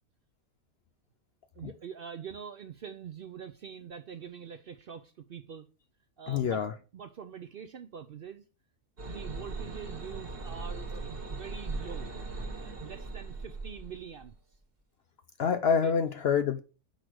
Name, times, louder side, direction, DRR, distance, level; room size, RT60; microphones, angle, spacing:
voice 1, 1.5-5.7 6.2-6.6 6.9-8.4 9.0-12.1 12.6-14.3 15.8-15.9, right 7 dB, 70° right, 0.5 m, -44 dB
voice 2, 6.3-6.8 15.4-16.6, left 6 dB, 65° left, 0.6 m, -27 dB
sound 1, 9.0-14.3, right 3 dB, 40° right, 1.5 m, -39 dB
6.4 x 5.0 x 6.2 m
omnidirectional pair, 1.6 m